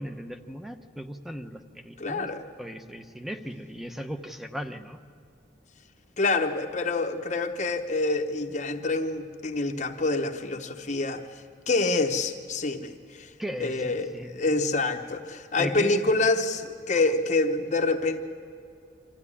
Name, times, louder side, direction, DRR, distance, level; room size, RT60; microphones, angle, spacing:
voice 1, 0.0-2.3 2.6-5.0 13.4-14.4 15.6-16.1, equal, ahead, 7 dB, 0.8 m, -37 dB
voice 2, 2.0-2.4 6.2-11.2 11.7-13.3 13.6-18.2, left 3 dB, 40° left, 4 dB, 0.9 m, -27 dB
25.5 x 15.0 x 9.8 m, 2.4 s
head